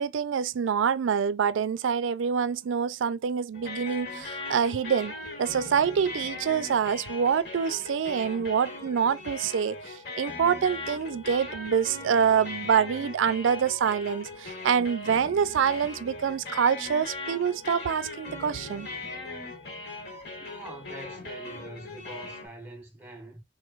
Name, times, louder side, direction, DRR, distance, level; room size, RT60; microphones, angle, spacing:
voice 1, 0.0-18.9, right 7 dB, 70° right, 0.4 m, -26 dB
sound 1, 3.5-22.5, left 3 dB, 60° left, 1.4 m, -39 dB
voice 2, 20.4-23.4, right 1 dB, 10° right, 1.1 m, -44 dB
3.9 x 3.1 x 2.4 m
head